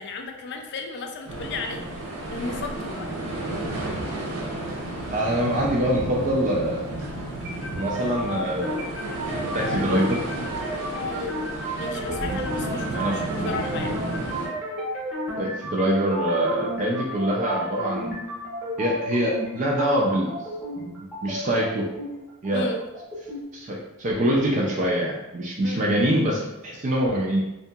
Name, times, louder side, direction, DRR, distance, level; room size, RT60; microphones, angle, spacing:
voice 1, 0.0-1.8 2.3-3.1 10.9-11.4 11.7-14.0 22.5-22.8 25.6-25.9, left 3 dB, 55° left, 3 dB, 0.4 m, -34 dB
sound 1, 1.3-14.5, right 1 dB, 80° right, 0.7 m, -32 dB
voice 2, 5.1-6.9 7.8-8.7 9.5-10.2 12.2-12.4 12.8-13.2 15.4-18.1 18.8-20.3 20.8-21.0 21.2-21.9 22.4-22.7 23.5-27.4, right 1 dB, 35° right, -3 dB, 0.3 m, -24 dB
sound 2, 7.4-23.4, equal, 5° right, 0.8 m, -33 dB
2.7 x 2.7 x 2.3 m, 0.99 s
head